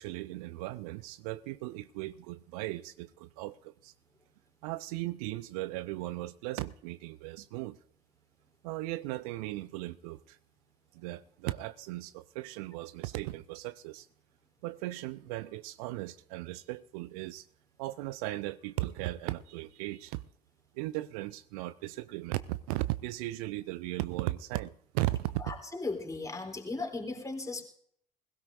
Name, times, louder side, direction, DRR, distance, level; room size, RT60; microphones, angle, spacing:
voice 1, 0.0-3.9 4.6-7.8 8.6-10.4 10.9-14.1 14.6-17.5 17.8-20.2 20.7-25.4, right 18 dB, 60° right, 0.5 m, -37 dB
voice 2, 25.4-27.6, left 3 dB, 15° left, 3.5 m, -37 dB
21.5 x 16.5 x 2.7 m
figure-of-eight pair, 60°, 21 cm